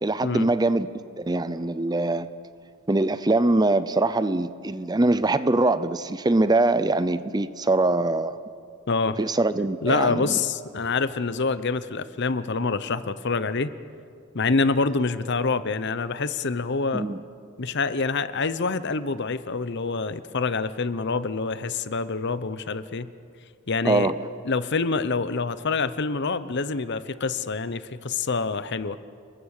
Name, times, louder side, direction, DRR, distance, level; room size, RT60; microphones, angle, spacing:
voice 1, 0.0-2.3 2.9-8.3 9.2-10.4 16.9-17.2 23.8-24.3, right 2 dB, 20° right, 0.6 m, -23 dB
voice 2, 8.9-9.2 9.8-13.7 14.3-17.1 17.6-23.1 23.7-24.1 24.5-29.0, left 4 dB, 55° left, 0.8 m, -26 dB
30.0 x 21.5 x 6.6 m
head